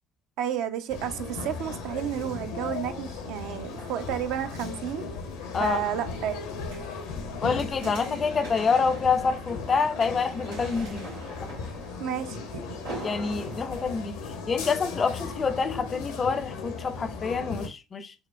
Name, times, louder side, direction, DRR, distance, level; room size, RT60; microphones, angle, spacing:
voice 1, 0.4-5.0 5.6-6.4 12.0-12.8, right 10 dB, 65° right, 0.4 m, -31 dB
sound 1, 0.9-17.7, left 4 dB, 75° left, 0.6 m, -37 dB
sound 2, 3.7-14.9 15.4-15.5, right 2 dB, 80° right, 1.7 m, -45 dB
voice 2, 7.4-11.1 13.0-14.1 14.5-18.1, left 5 dB, 35° left, 0.4 m, -27 dB
5.4 x 2.0 x 2.2 m
hypercardioid pair, 60°, 0 cm